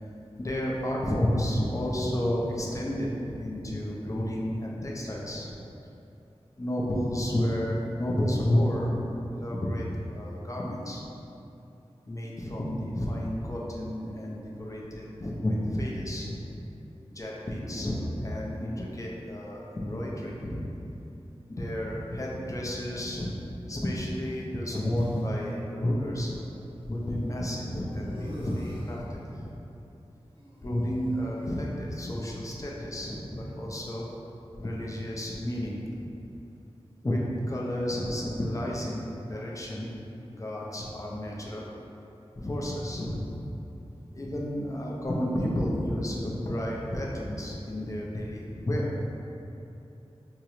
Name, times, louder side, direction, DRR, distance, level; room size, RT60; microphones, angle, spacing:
voice 1, 0.4-5.5 6.6-11.0 12.1-16.4 17.1-20.7 21.5-23.3 23.7-26.4 26.8-29.5 30.6-34.1 34.5-36.1 37.0-37.2 37.5-39.9 40.3-41.7 42.4-43.4 44.1-49.0, equal, 30° left, -4 dB, 0.5 m, -31 dB
sound 1, 24.1-25.2 26.2-26.3 27.9-29.0 30.3-31.6, equal, 50° right, 0.7 m, -46 dB
3.6 x 2.0 x 3.0 m, 2.8 s
wide cardioid pair, 60°, 11 cm